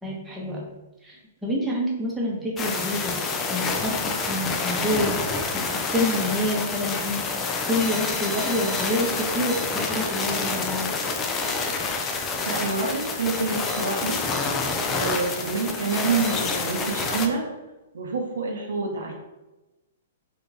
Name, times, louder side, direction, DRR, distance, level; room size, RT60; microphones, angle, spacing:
voice 1, 0.0-0.7 1.0-3.2 3.5-5.2 5.7-7.2 7.6-10.9, left 1 dB, 5° right, -5 dB, 0.8 m, -27 dB
sound 1, 2.6-17.3, left 4 dB, 25° left, 0.4 m, -28 dB
voice 2, 12.5-14.2 14.9-17.5 17.9-19.1, right 4 dB, 70° right, 1 dB, 0.7 m, -27 dB
3.5 x 2.4 x 3.1 m, 1.1 s
figure-of-eight pair, 115°, 0 cm